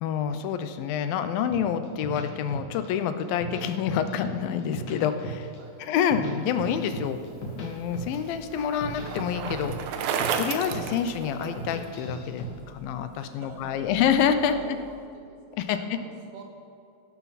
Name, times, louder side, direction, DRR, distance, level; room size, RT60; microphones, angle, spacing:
voice 1, 0.0-5.5 5.8-9.7 10.4-14.5 15.6-16.0, left 8 dB, 80° left, 10 dB, 2.4 m, -27 dB
sound 1, 1.5-2.9 3.2-4.3 4.6-5.6 5.9-7.7 7.9-8.3 8.6-10.4 10.7-11.1 11.4-12.5, right 1 dB, 60° left, 3.1 m, -36 dB
voice 2, 5.6-6.0 13.2-14.0 14.4-16.4, right 4 dB, 65° right, 0 dB, 3.4 m, -47 dB
sound 2, 7.0-15.0, right 5 dB, 5° left, 3.3 m, -50 dB
Bicycle, 7.4-11.9, right 7 dB, 80° right, 2.6 m, -32 dB
16.5 x 11.5 x 4.1 m, 2.4 s
omnidirectional pair, 4.2 m